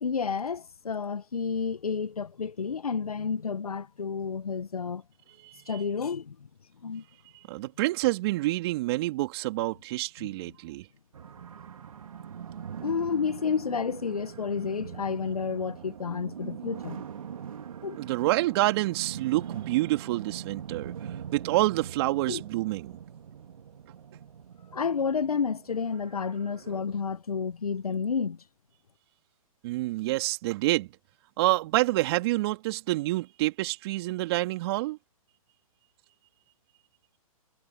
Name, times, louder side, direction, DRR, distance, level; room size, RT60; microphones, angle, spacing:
voice 1, 0.0-5.0 5.7-6.3 6.8-7.0 12.8-17.0 17.8-18.0 22.3-22.4 24.7-28.4, left 6 dB, 85° left, 1.3 m, -30 dB
voice 2, 5.4-5.8 7.5-10.9 18.0-23.0 29.6-30.9 31.4-35.0, right 18 dB, 45° right, 2.8 m, -28 dB
sound 1, 11.1-26.8, right 8 dB, 70° right, 2.3 m, -42 dB
hypercardioid pair, 130°, 19 cm